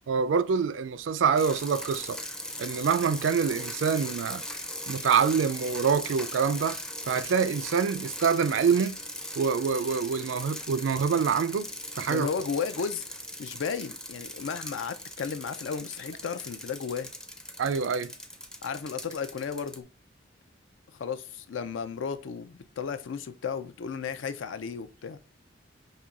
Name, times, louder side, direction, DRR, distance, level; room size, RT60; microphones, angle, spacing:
voice 1, 0.1-2.2 2.6-4.4 4.9-6.8 7.1-9.0 9.4-11.7 11.9-12.3 17.6-18.1, right 6 dB, 70° right, 0.4 m, -26 dB
sound 1, 1.4-19.8, left 1 dB, 5° left, 0.4 m, -39 dB
voice 2, 12.1-13.1 13.4-17.1 18.6-19.8 20.9-25.2, left 6 dB, 75° left, 0.4 m, -34 dB
5.4 x 2.9 x 2.4 m
head